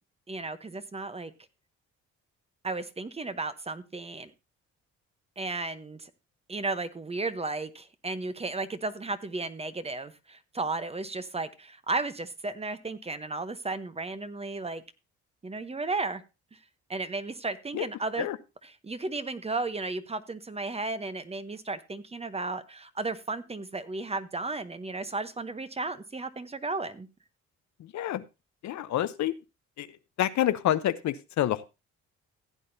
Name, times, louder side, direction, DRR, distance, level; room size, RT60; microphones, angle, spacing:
voice 1, 0.3-1.3 2.6-4.3 5.4-6.1 6.5-14.8 15.4-16.2 16.5-16.6 16.9-18.3 18.6-27.1, right 3 dB, 20° right, 12 dB, 0.9 m, -34 dB
voice 2, 28.6-29.3 29.8-29.9 30.2-31.6, left 12 dB, 70° left, 13 dB, 0.8 m, -27 dB
15.5 x 8.6 x 2.7 m, 0.26 s
cardioid pair, 90°, 30 cm